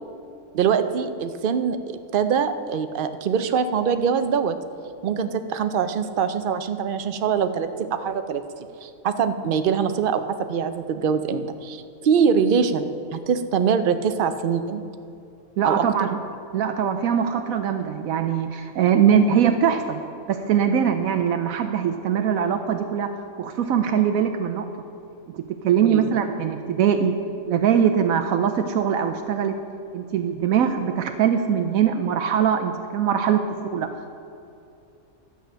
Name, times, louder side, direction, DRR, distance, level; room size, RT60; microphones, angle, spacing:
voice 1, 0.5-4.6 5.0-8.4 8.8-14.8 15.6-16.1 25.8-26.1, right 6 dB, 60° right, 9 dB, 0.5 m, -23 dB
voice 2, 15.6-16.1 16.5-20.0 20.3-24.7 25.3-27.1 27.5-29.6 29.9-33.4 33.7-33.9, right 8 dB, 75° right, 6 dB, 1.0 m, -22 dB
11.5 x 8.3 x 6.2 m, 2.6 s
omnidirectional pair, 1.5 m